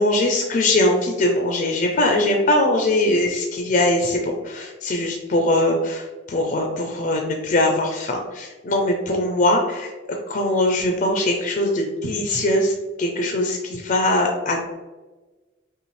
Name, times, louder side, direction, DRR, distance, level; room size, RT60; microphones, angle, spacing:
voice 1, 0.0-9.9 10.3-12.7 13.0-14.6, left 1 dB, 45° left, 2 dB, 0.5 m, -21 dB
5.5 x 2.4 x 3.1 m, 1.2 s
head